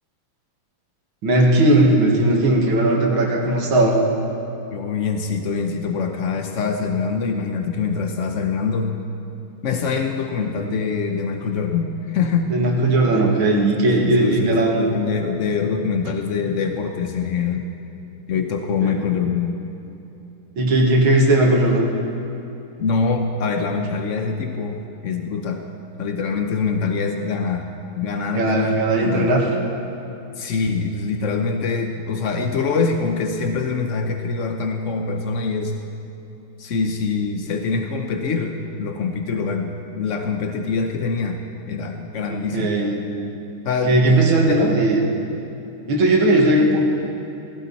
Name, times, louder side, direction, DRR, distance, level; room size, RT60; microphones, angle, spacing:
voice 1, 1.2-4.0 12.5-14.8 18.8-19.0 20.6-21.9 28.4-29.4 42.3-43.0 43.9-45.0 45.9-46.8, right 1 dB, 65° right, -1 dB, 2.6 m, -17 dB
voice 2, 4.7-9.0 9.6-12.6 13.8-17.7 18.3-19.6 22.8-25.7 26.0-27.7 28.0-29.3 30.4-35.7 36.6-41.4 41.7-42.7 43.6-44.1 44.5-44.7, left 5 dB, 85° left, 4 dB, 0.6 m, -24 dB
17.0 x 16.0 x 4.2 m, 2.9 s
omnidirectional pair, 2.4 m